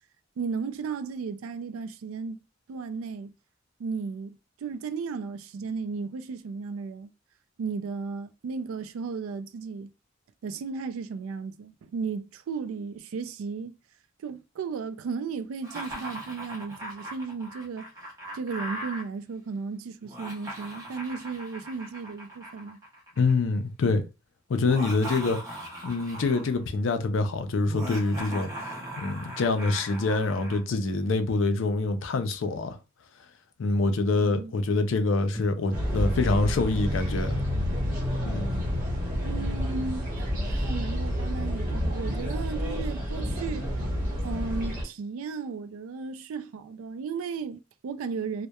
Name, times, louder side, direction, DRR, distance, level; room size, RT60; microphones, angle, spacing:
voice 1, 0.4-2.4 2.7-3.3 3.8-7.1 7.6-9.9 10.4-13.8 14.2-17.9 18.3-22.8 34.2-34.6 39.2-43.7 44.2-48.5, right 5 dB, 85° right, 0.3 m, -35 dB
Laughter, 15.6-19.0 20.0-23.3 24.5-26.6 27.7-30.6, right 1 dB, 15° right, 0.7 m, -39 dB
voice 2, 23.2-24.0 24.5-25.4 25.8-28.5 29.0-32.8 33.6-37.4 38.2-38.8, left 3 dB, 65° left, 0.4 m, -26 dB
sound 1, 35.3-37.8 38.0-38.1 38.4-38.7 39.3-39.7 40.1-40.6 41.6-42.0 42.8-42.9 43.1-43.8, left 1 dB, 20° left, 0.9 m, -38 dB
sound 2, 35.7-44.8, equal, 45° right, 0.9 m, -29 dB
2.8 x 2.1 x 2.2 m
head